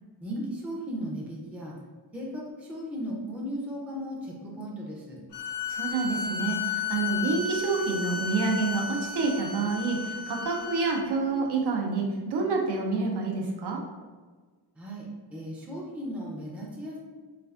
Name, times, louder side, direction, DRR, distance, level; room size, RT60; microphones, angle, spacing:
voice 1, 0.2-1.8 2.1-5.2 14.8-15.0 15.3-17.0, equal, 5° right, -3 dB, 0.4 m, -36 dB
sound 1, 5.3-11.0, left 5 dB, 75° left, 0.5 m, -33 dB
voice 2, 5.7-13.8, right 4 dB, 70° right, 0 dB, 0.6 m, -28 dB
3.2 x 2.5 x 2.3 m, 1.4 s
wide cardioid pair, 155°, 41 cm